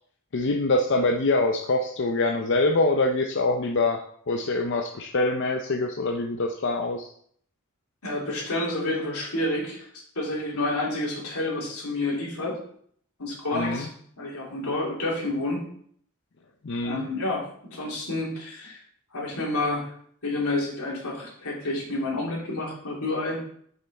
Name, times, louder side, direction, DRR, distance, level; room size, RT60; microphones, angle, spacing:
voice 1, 0.3-7.1 13.5-13.9 16.6-17.1, left 2 dB, 55° left, 3 dB, 0.6 m, -25 dB
voice 2, 8.0-9.9 10.1-12.6 13.2-13.9 14.2-15.7 16.8-18.8 19.1-19.9 20.2-23.4, left 2 dB, 85° left, -4 dB, 3.1 m, -29 dB
7.5 x 5.6 x 4.1 m, 0.63 s
head